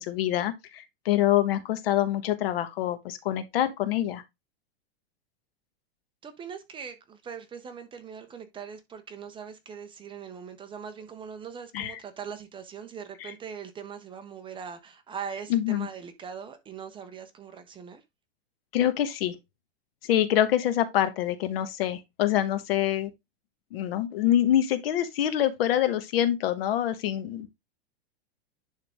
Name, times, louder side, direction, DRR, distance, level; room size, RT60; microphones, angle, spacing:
voice 1, 0.0-4.2 11.7-12.0 13.2-13.3 15.5-15.9 18.7-19.4 20.0-23.1 23.7-27.5, left 12 dB, 65° left, 1.4 m, -26 dB
voice 2, 6.2-18.0, right 7 dB, 15° right, 0.8 m, -41 dB
10.5 x 3.7 x 3.5 m
supercardioid pair, 150°, 32 cm